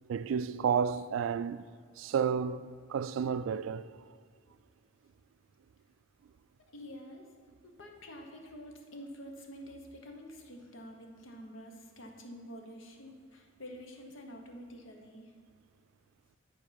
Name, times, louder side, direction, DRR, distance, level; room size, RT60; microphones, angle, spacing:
voice 1, 0.1-1.7 2.0-3.9, right 7 dB, 75° right, 0.3 m, -31 dB
voice 2, 6.7-7.3 7.6-15.3, equal, 75° left, 1.1 m, -48 dB
9.8 x 4.2 x 5.8 m
head